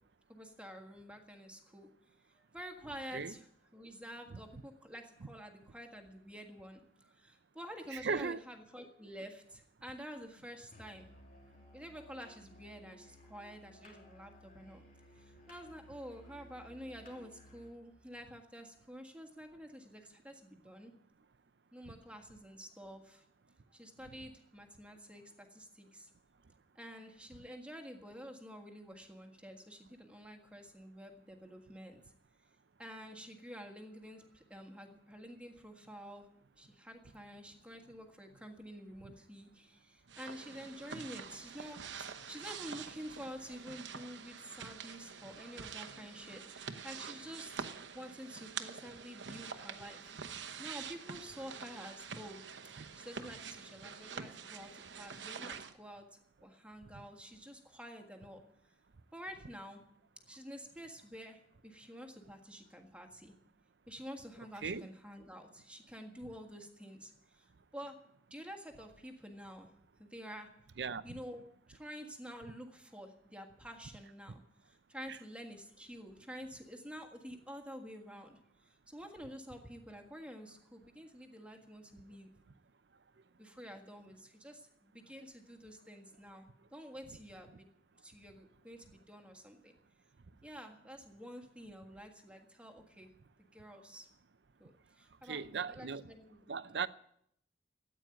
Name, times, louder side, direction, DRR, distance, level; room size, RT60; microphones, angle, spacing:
voice 1, 0.3-1.9 2.3-3.5 3.7-11.1 11.7-14.8 15.1-20.9 21.7-23.2 23.7-26.1 26.7-32.0 32.8-36.3 36.6-47.7 47.9-52.4 52.7-56.1 56.4-58.4 59.1-59.8 60.3-63.3 63.9-68.0 68.3-69.7 70.0-70.5 71.0-71.4 71.7-82.3 83.4-87.7 88.0-89.8 90.4-93.1 93.4-94.1 94.6-96.4 96.7-96.9, equal, 5° right, 1.6 m, -49 dB
voice 2, 7.9-8.4 21.9-22.0 39.0-39.1 52.8-52.9 64.6-64.9 70.8-71.2 75.1-75.2 95.2-96.0 96.5-96.9, right 5 dB, 70° right, 0.6 m, -38 dB
Musical instrument, 10.7-17.8, left 1 dB, 50° left, 2.9 m, -58 dB
sound 1, 40.1-55.7, right 6 dB, 90° right, 1.0 m, -46 dB
13.5 x 9.1 x 9.1 m
head